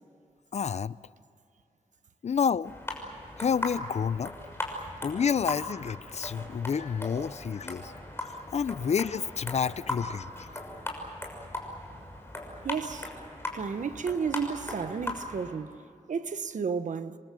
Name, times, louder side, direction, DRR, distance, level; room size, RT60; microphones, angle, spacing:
voice 1, 0.5-1.0 2.2-2.7 3.4-4.3 5.0-7.9 8.2-10.6, left 6 dB, 60° left, 0.5 m, -29 dB
sound 1, 2.6-15.5, left 1 dB, 20° left, 6.2 m, -38 dB
voice 2, 12.6-13.1 13.5-17.2, right 6 dB, 70° right, 1.2 m, -32 dB
28.5 x 23.0 x 7.6 m
wide cardioid pair, 110°, 13 cm